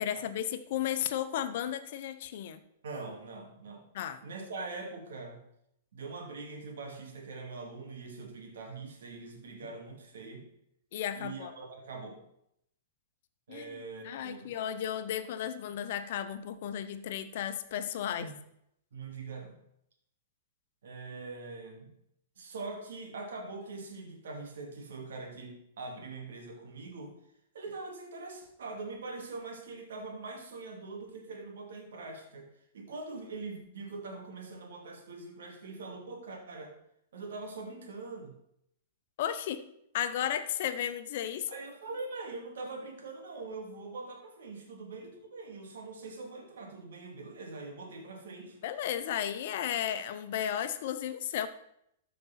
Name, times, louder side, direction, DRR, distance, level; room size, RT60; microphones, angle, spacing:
voice 1, 0.0-2.6 3.9-4.2 10.9-11.5 13.5-18.3 39.2-39.6 39.9-41.5 48.6-51.5, left 10 dB, 60° left, 11 dB, 0.9 m, -34 dB
voice 2, 2.8-3.8 4.2-5.4 5.9-10.5 11.1-12.2 13.5-14.5 18.2-18.3 18.9-19.6 20.8-21.9 22.4-27.1 27.5-32.5 32.7-36.7 37.1-38.3 41.5-48.6, right 3 dB, 75° right, 2 dB, 2.6 m, -43 dB
13.5 x 5.2 x 4.3 m, 0.75 s
hypercardioid pair, 120°, 0 cm